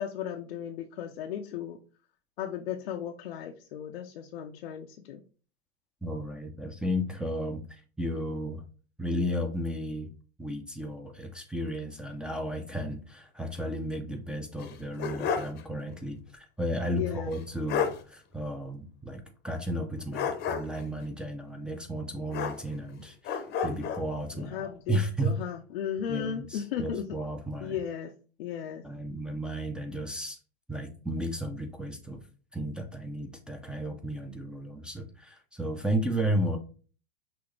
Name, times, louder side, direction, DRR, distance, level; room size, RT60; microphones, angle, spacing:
voice 1, 0.0-1.8 2.4-5.2 16.9-17.3 24.3-27.1 27.6-28.1 28.4-28.8, left 9 dB, 65° left, 2 dB, 0.7 m, -35 dB
voice 2, 6.0-8.6 9.0-10.1 10.4-25.4 26.1-27.8 28.8-30.4 30.7-32.2 32.5-36.6, equal, 5° right, 4 dB, 0.7 m, -33 dB
sound 1, 14.6-15.6 15.9-16.0 17.3-17.4 17.7-18.0 20.1-20.9 22.3-22.9 23.2-24.1, left 7 dB, 30° left, 0.9 m, -31 dB
6.0 x 2.7 x 3.2 m, 0.38 s
hypercardioid pair, 110°, 31 cm